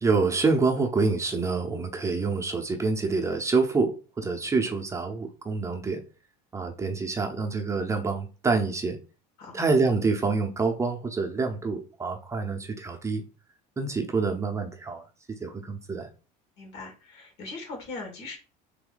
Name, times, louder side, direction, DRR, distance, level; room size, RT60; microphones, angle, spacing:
voice 1, 0.0-6.0 6.5-9.0 9.5-13.2 13.8-15.0 15.4-16.1, right 4 dB, 15° right, 0.7 m, -27 dB
voice 2, 16.6-18.4, left 3 dB, 65° left, 1.9 m, -40 dB
3.4 x 2.7 x 3.8 m
supercardioid pair, 110°, 19 cm